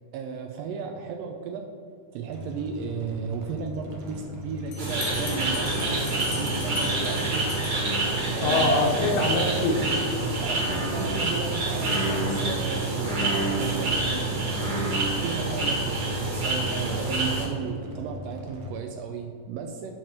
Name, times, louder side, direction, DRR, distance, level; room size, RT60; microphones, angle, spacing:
voice 1, 0.1-1.7 2.1-7.9 8.4-9.4 10.4-14.2 15.2-15.8 16.4-19.9, right 6 dB, 90° right, 4 dB, 1.4 m, -35 dB
sound 1, 2.3-18.7, left 2 dB, 65° right, 1.9 m, -40 dB
Bell, 4.7-8.3, left 7 dB, 90° left, 2.4 m, -40 dB
sound 2, 4.8-17.4, right 2 dB, 40° right, 1.5 m, -27 dB
voice 2, 8.4-10.4, left 2 dB, 70° left, 1 dB, 1.7 m, -25 dB
8.7 x 3.2 x 6.0 m, 2.3 s
omnidirectional pair, 3.5 m